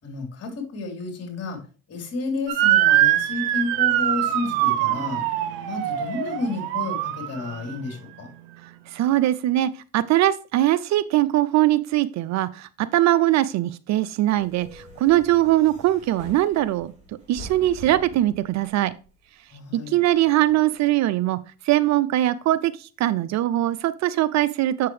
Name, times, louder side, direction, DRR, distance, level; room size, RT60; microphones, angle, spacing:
voice 1, 0.0-1.6 1.9-5.2 5.6-8.3 19.5-19.9, left 3 dB, 45° left, 3 dB, 3.6 m, -31 dB
Motor vehicle (road) / Siren, 2.5-7.7, right 13 dB, 75° right, 0.9 m, -23 dB
voice 2, 8.9-16.9 17.3-18.9 19.9-21.4 21.6-24.9, right 14 dB, 50° right, 16 dB, 0.5 m, -21 dB
sound 1, 14.4-19.2 19.8-20.9, right 1 dB, 20° right, 4.1 m, -45 dB
7.6 x 6.7 x 3.2 m, 0.36 s
supercardioid pair, 95°, 36 cm